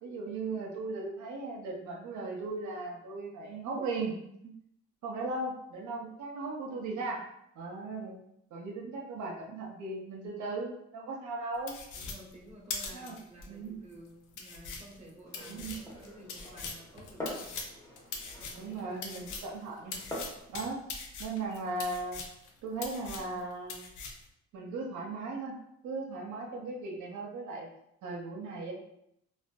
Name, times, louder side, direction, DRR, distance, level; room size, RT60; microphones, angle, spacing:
voice 1, 0.0-4.5 5.0-7.2 7.6-8.2 8.5-11.7 12.9-13.8 15.5-15.8 18.6-19.9 20.5-20.8 21.2-22.2 22.6-23.9 24.5-25.6 25.8-27.7 28.0-28.7, right 3 dB, 75° right, -1 dB, 0.6 m, -37 dB
sound 1, 11.7-13.5 13.9-14.0 14.3-19.6 19.9-22.5 22.8-23.4 23.7-24.3, left 4 dB, 80° left, 0.5 m, -41 dB
voice 2, 11.9-17.5 18.4-18.7, right 1 dB, 20° right, -3 dB, 0.8 m, -52 dB
Glass, 15.3-20.4, left 1 dB, 10° left, 0.8 m, -45 dB
2.5 x 2.3 x 2.2 m, 0.77 s
cardioid pair, 90°, 30 cm